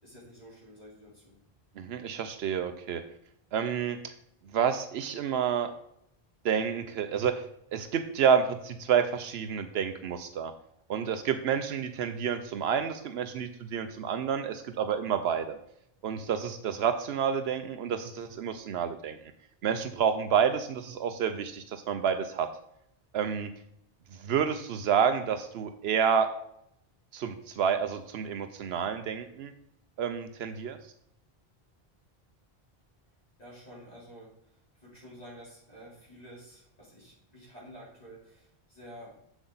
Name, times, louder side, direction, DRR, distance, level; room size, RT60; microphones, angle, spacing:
voice 1, 0.0-1.4 33.4-39.2, equal, 40° left, -7 dB, 3.9 m, -50 dB
voice 2, 1.8-3.0 3.5-4.1 4.5-5.7 6.4-7.4 7.7-10.5 10.9-15.6 16.0-19.2 19.6-22.5 23.1-23.5 24.1-26.3 27.1-29.5 30.0-30.8, right 7 dB, 80° right, 9 dB, 0.9 m, -29 dB
7.9 x 7.2 x 4.0 m, 0.74 s
omnidirectional pair, 1.0 m